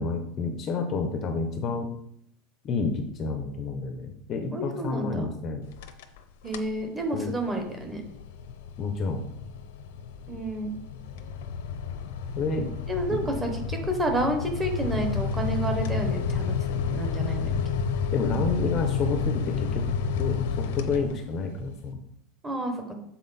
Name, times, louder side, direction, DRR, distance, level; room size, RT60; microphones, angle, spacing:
voice 1, 0.0-1.9 2.6-5.7 7.1-7.3 8.8-9.2 12.4-12.7 13.1-13.2 18.1-19.8 20.2-22.0, left 4 dB, 25° left, 5 dB, 0.6 m, -29 dB
voice 2, 4.5-5.3 6.4-8.0 10.3-10.8 12.9-17.5 22.4-22.8, right 1 dB, 10° right, 3 dB, 1.0 m, -30 dB
sound 1, 5.6-6.2 6.5-6.8 7.3-21.5, left 6 dB, 75° left, 0.7 m, -30 dB
7.5 x 4.2 x 4.1 m, 0.70 s
supercardioid pair, 175°, 0 cm